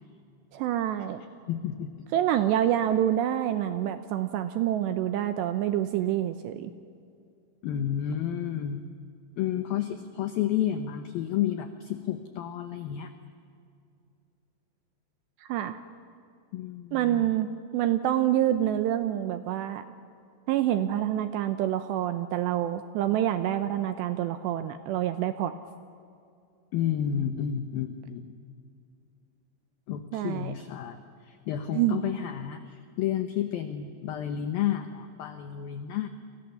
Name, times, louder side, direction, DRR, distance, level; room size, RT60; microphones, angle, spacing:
voice 1, 0.5-1.2 2.1-6.7 15.4-15.8 16.9-19.8 20.5-25.5 30.1-30.5 31.7-32.0, right 11 dB, 80° right, 10 dB, 2.6 m, -27 dB
voice 2, 1.5-2.1 7.6-8.8 9.4-13.1 16.5-17.3 26.7-28.4 29.9-36.1, left 10 dB, 80° left, 7 dB, 2.1 m, -31 dB
30.0 x 25.5 x 7.0 m, 2.4 s
omnidirectional pair, 5.8 m